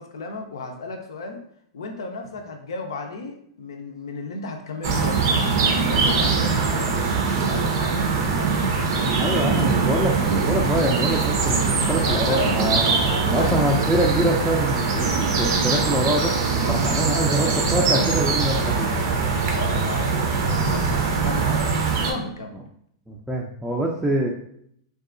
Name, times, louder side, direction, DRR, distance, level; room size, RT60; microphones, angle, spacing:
voice 1, 0.0-1.4 1.7-7.1 7.5-8.1 8.3-8.6 9.1-9.6 12.1-13.7 16.5-22.6, left 3 dB, 80° left, 4 dB, 0.5 m, -34 dB
sound 1, 4.8-22.1, right 4 dB, 60° right, 0.5 m, -22 dB
voice 2, 9.2-12.9 13.3-16.3 16.7-18.9 23.1-24.3, right 1 dB, 5° right, -3 dB, 0.4 m, -25 dB
2.7 x 2.3 x 2.5 m, 0.68 s
hypercardioid pair, 115°, 2 cm